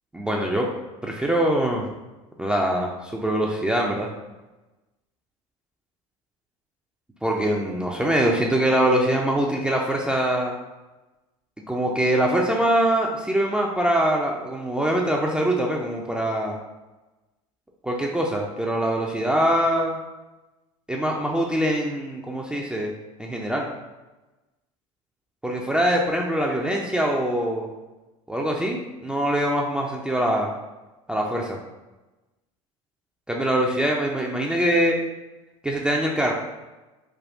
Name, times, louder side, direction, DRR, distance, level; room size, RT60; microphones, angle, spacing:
voice 1, 0.1-0.7 1.0-1.9 2.4-4.1 7.2-10.6 11.7-16.6 17.8-20.0 20.9-22.9 23.2-23.7 25.4-27.7 28.3-30.5 31.1-31.6 33.3-35.0 35.6-36.3, right 1 dB, 5° right, -1 dB, 0.3 m, -23 dB
3.4 x 2.3 x 2.5 m, 1.1 s
hypercardioid pair, 80°, 17 cm